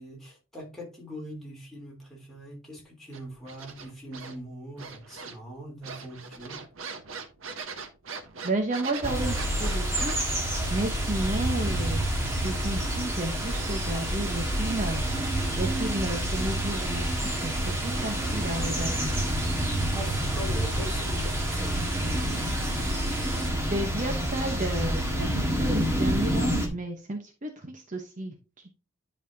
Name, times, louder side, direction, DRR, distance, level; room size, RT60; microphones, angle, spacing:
voice 1, 0.0-6.6 19.9-21.8, equal, ahead, 3.3 m, -41 dB
sound 1, 3.1-4.4 4.8-5.5 5.8-10.4, right 5 dB, 90° right, 1.2 m, -40 dB
voice 2, 8.4-10.2 10.7-15.0 15.6-17.1 17.4-19.2 23.7-28.4, right 2 dB, 40° right, 1.0 m, -32 dB
sound 2, 9.0-26.7, equal, 15° right, 1.6 m, -28 dB
sound 3, 9.1-23.5, right 5 dB, 65° right, 1.9 m, -41 dB
10.0 x 5.6 x 2.7 m
head